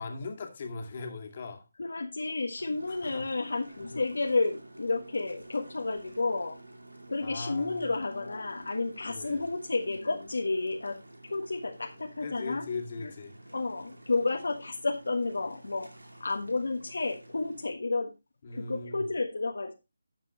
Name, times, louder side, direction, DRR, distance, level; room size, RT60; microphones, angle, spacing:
voice 1, 0.0-1.6 2.9-3.2 7.2-7.9 9.1-9.5 12.2-13.3 18.4-19.1, left 4 dB, 40° left, 4 dB, 2.2 m, -39 dB
voice 2, 1.8-6.6 7.1-11.0 11.3-12.7 13.0-13.1 13.5-15.9 16.2-18.1 18.5-19.7, left 3 dB, 70° left, 3 dB, 1.4 m, -31 dB
sound 1, 2.6-17.7, right 2 dB, 90° right, 2.4 m, -51 dB
12.0 x 7.5 x 3.0 m, 0.26 s
figure-of-eight pair, 160°, 0 cm